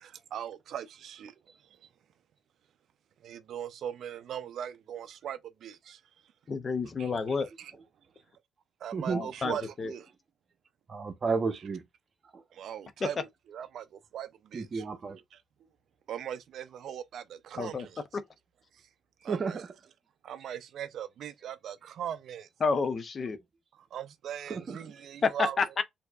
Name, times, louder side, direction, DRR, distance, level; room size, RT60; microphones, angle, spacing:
voice 1, 0.0-1.3 3.2-6.0 7.0-7.2 7.6-7.7 8.8-10.1 12.5-13.2 13.5-14.8 15.3-15.4 16.1-18.0 19.2-19.6 20.2-22.5 23.9-25.6, right 9 dB, 70° right, 0.3 m, -40 dB
voice 2, 6.5-7.5 9.1-9.9 17.6-17.9 22.6-23.4 25.2-25.8, left 4 dB, 35° left, 0.4 m, -29 dB
voice 3, 10.9-11.8 12.3-12.4 14.5-15.2 19.3-19.7 24.5-25.1, right 4 dB, 35° right, 0.8 m, -32 dB
4.4 x 2.7 x 2.3 m
cardioid pair, 130°, 0 cm